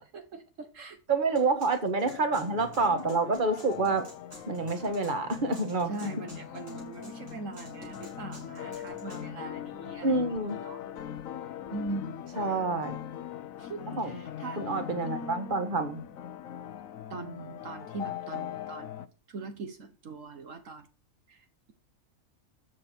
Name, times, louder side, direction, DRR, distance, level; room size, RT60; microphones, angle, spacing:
voice 1, 0.0-1.0 5.9-10.2 10.6-10.8 11.7-12.7 13.6-14.6 17.1-20.9 21.3-21.7, right 3 dB, 65° right, 1.5 m, -41 dB
voice 2, 1.1-4.1 4.5-6.1 10.0-10.6 12.4-13.0 13.9-14.2 14.6-16.0, right 3 dB, 35° right, 1.7 m, -28 dB
sound 1, 1.4-9.2, equal, 85° right, 7.3 m, -51 dB
sound 2, 2.0-19.1, left 9 dB, 75° left, 1.2 m, -41 dB
13.5 x 7.2 x 4.4 m
omnidirectional pair, 1.4 m